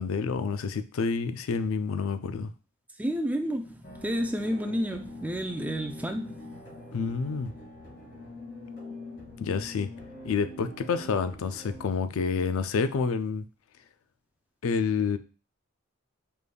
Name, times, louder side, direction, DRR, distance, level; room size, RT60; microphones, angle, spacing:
voice 1, 0.0-2.5 6.9-7.5 9.4-9.9 10.2-13.4 14.6-15.2, left 5 dB, 70° left, 0.4 m, -28 dB
voice 2, 3.0-6.5, equal, 5° right, 0.4 m, -31 dB
sound 1, 3.8-11.9, left 2 dB, 55° left, 2.1 m, -44 dB
5.2 x 3.4 x 2.2 m
head